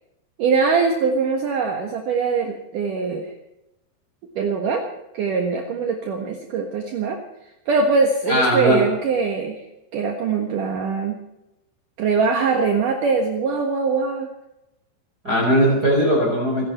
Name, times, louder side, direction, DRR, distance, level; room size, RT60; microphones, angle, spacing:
voice 1, 0.4-3.3 4.4-4.8 5.1-7.2 7.7-9.6 9.9-11.2 12.0-14.3, right 4 dB, 60° right, 3 dB, 2.7 m, -22 dB
voice 2, 8.3-8.8 15.2-16.7, equal, 20° right, -2 dB, 4.9 m, -19 dB
27.0 x 11.5 x 4.4 m, 0.92 s
omnidirectional pair, 4.7 m